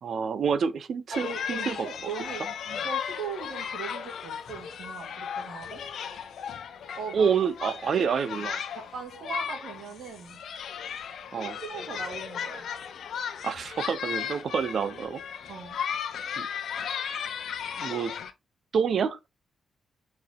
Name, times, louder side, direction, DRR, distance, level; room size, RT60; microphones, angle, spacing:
voice 1, 0.0-1.9 7.1-8.6 11.3-11.5 13.4-15.2 16.4-16.5 17.8-18.1 18.7-19.3, right 6 dB, 60° right, 0.9 m, -28 dB
sound 1, 1.1-18.3, left 8 dB, 70° left, 0.9 m, -36 dB
voice 2, 1.1-5.8 6.9-7.8 8.7-10.4 11.4-12.7 15.5-15.8, right 5 dB, 75° right, 2.5 m, -39 dB
5.6 x 4.7 x 3.7 m
cardioid pair, 105°, 0 cm